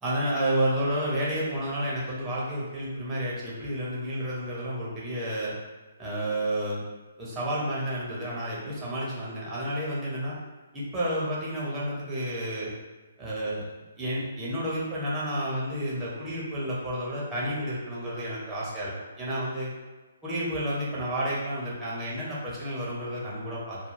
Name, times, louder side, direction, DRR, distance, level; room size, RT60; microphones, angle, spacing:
voice 1, 0.0-5.5 6.0-6.8 7.2-10.3 10.7-12.7 13.2-13.6 14.0-19.7 20.2-23.8, right 1 dB, 10° right, -7 dB, 0.8 m, -30 dB
2.2 x 2.1 x 3.1 m, 1.2 s
figure-of-eight pair, 135°, 0 cm